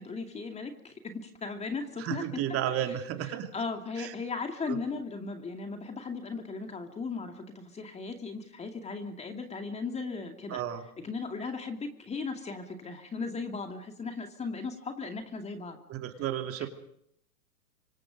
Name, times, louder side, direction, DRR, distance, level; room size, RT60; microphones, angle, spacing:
voice 1, 0.0-2.4 3.5-10.6 11.0-15.8 16.6-16.7, left 4 dB, 15° left, 5 dB, 2.4 m, -37 dB
voice 2, 2.0-3.5 4.0-4.1 4.7-4.8 10.5-10.8 15.9-16.7, right 11 dB, 30° right, 6 dB, 2.8 m, -32 dB
26.5 x 25.0 x 5.3 m, 0.70 s
hypercardioid pair, 115°, 46 cm